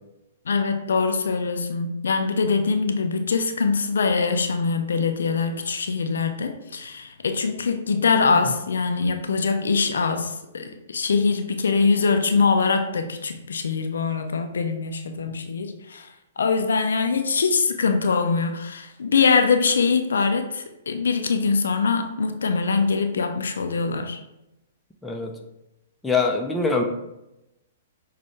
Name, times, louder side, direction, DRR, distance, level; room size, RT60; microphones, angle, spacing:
voice 1, 0.5-16.1 16.4-24.2, left 4 dB, 70° left, 6 dB, 0.4 m, -23 dB
voice 2, 25.0-25.3 26.0-26.8, left 4 dB, 5° left, 1 dB, 0.5 m, -23 dB
6.1 x 2.2 x 3.0 m, 0.92 s
figure-of-eight pair, 115°, 0 cm